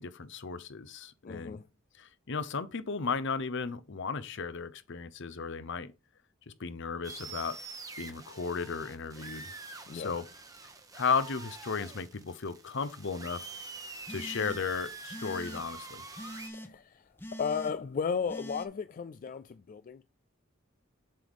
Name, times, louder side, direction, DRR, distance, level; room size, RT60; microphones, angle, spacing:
voice 1, 0.0-1.6 2.0-5.9 6.5-7.6 8.0-9.5 9.9-10.2 10.9-13.4 14.1-16.0, left 5 dB, 60° left, 0.7 m, -35 dB
voice 2, 1.2-1.7 9.9-10.2 16.4-17.1 17.4-20.0, left 6 dB, 40° left, 0.3 m, -35 dB
sound 1, 7.0-16.5, right 3 dB, 15° right, 0.9 m, -45 dB
sound 2, 14.1-14.8 15.1-15.6 16.2-16.7 17.2-17.7 18.3-18.7, equal, 10° left, 0.7 m, -43 dB
7.5 x 3.6 x 4.8 m
head